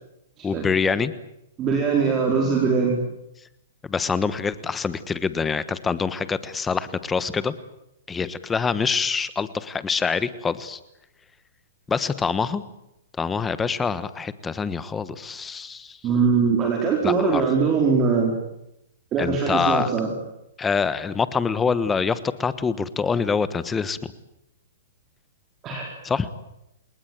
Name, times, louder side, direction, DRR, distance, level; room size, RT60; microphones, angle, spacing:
voice 1, 0.4-1.1 3.9-7.5 8.1-10.8 11.9-12.6 13.2-16.0 17.0-17.4 19.2-19.9 20.6-24.0 26.0-26.3, left 5 dB, 10° left, 15 dB, 1.3 m, -25 dB
voice 2, 1.6-3.0 16.0-18.4 19.1-20.1 25.6-25.9, right 5 dB, 25° right, 1 dB, 4.5 m, -21 dB
28.5 x 19.5 x 9.4 m, 0.85 s
hypercardioid pair, 150°, 0 cm